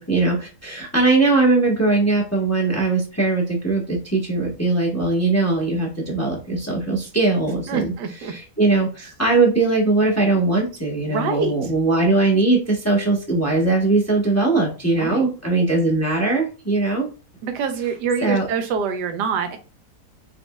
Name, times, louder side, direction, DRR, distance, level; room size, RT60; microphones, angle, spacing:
voice 1, 0.0-7.9 8.3-17.1 18.2-18.5, right 3 dB, 15° left, -1 dB, 0.7 m, -20 dB
voice 2, 7.7-8.3 11.1-11.7 15.0-15.2 17.4-19.6, right 6 dB, 80° right, 7 dB, 1.3 m, -25 dB
4.2 x 3.9 x 2.3 m, 0.34 s
omnidirectional pair, 1.8 m